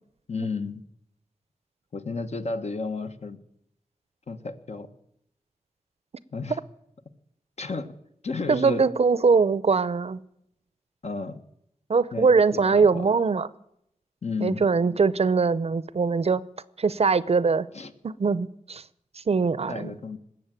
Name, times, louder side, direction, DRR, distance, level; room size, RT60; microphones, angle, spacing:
voice 1, 0.3-0.8 1.9-3.4 4.3-4.9 6.3-6.6 7.6-7.9 8.2-8.8 11.0-11.4 12.1-13.1 14.2-14.6 17.7-17.9 19.7-20.2, left 4 dB, 55° left, 1.2 m, -32 dB
voice 2, 8.5-10.2 11.9-13.5 14.4-16.4 16.8-17.7 18.0-18.8 19.3-19.9, right 4 dB, 50° right, 0.6 m, -22 dB
20.0 x 7.7 x 9.0 m
wide cardioid pair, 105°, 14 cm